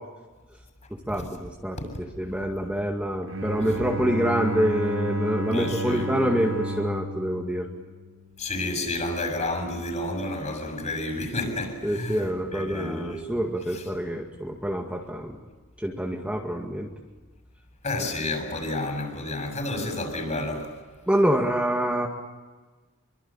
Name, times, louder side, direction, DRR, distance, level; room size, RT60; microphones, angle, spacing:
voice 1, 1.1-1.8 2.2-7.7 11.8-15.4 15.8-16.9 20.3-20.5 21.1-22.1, equal, 5° right, 0 dB, 2.1 m, -26 dB
Bowed string instrument, 3.3-8.5, right 1 dB, 70° right, 6.3 m, -32 dB
voice 2, 5.4-6.1 8.4-12.3 12.5-13.3 13.7-13.8 17.8-20.7, left 2 dB, 35° left, 4 dB, 7.1 m, -30 dB
27.0 x 24.0 x 8.8 m, 1.3 s
head